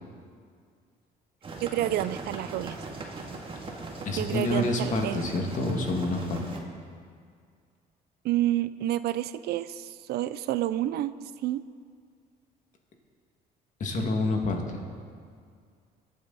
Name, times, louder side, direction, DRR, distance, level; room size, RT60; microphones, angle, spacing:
sound 1, 1.4-6.6, right 3 dB, 30° right, 2.0 m, -39 dB
voice 1, 1.6-2.8 4.1-5.2 8.2-11.1 11.4-11.6, right 13 dB, 70° right, 14 dB, 0.5 m, -29 dB
voice 2, 4.0-6.4 13.8-14.8, left 2 dB, 45° left, 2 dB, 2.3 m, -28 dB
23.0 x 8.6 x 4.2 m, 2.1 s
cardioid pair, 110°, 17 cm